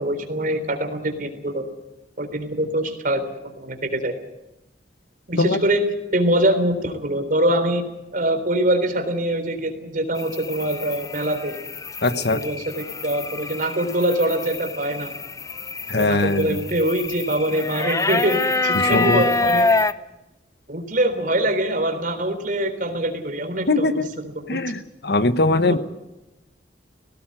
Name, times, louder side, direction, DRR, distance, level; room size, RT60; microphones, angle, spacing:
voice 1, 0.0-1.6 2.2-4.1 5.3-5.8 6.1-7.8 8.1-11.6 12.1-15.1 16.0-19.8 20.7-24.6, right 1 dB, 50° right, 7 dB, 3.7 m, -24 dB
sound 1, 10.1-19.9, left 3 dB, 20° left, 0.7 m, -26 dB
voice 2, 12.0-12.4 15.9-16.5 18.9-19.2 23.7-24.1 24.5-25.8, left 2 dB, 65° left, 12 dB, 1.3 m, -20 dB
18.5 x 18.0 x 8.9 m, 0.94 s
head